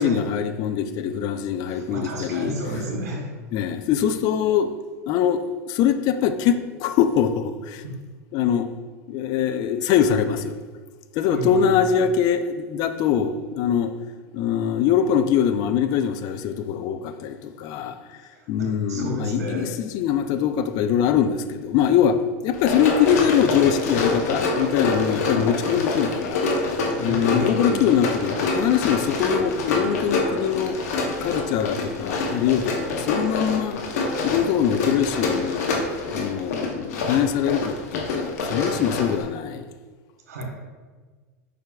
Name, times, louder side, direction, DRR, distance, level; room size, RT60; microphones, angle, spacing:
voice 1, 0.0-2.6 3.5-4.7 5.1-7.8 8.3-8.7 9.1-10.6 11.1-13.9 14.3-18.0 18.5-22.2 22.4-26.5 27.0-30.8 31.2-33.8 34.2-35.7 36.1-39.6, left 8 dB, 50° left, 9 dB, 0.4 m, -23 dB
voice 2, 1.7-3.3 7.8-8.0 11.3-11.7 18.3-19.7 27.0-27.8 40.3-40.4, equal, 85° right, 0 dB, 1.1 m, -31 dB
Run, 22.5-39.2, left 3 dB, 80° left, 0.8 m, -26 dB
4.8 x 4.6 x 2.3 m, 1.4 s
hypercardioid pair, 105°, 8 cm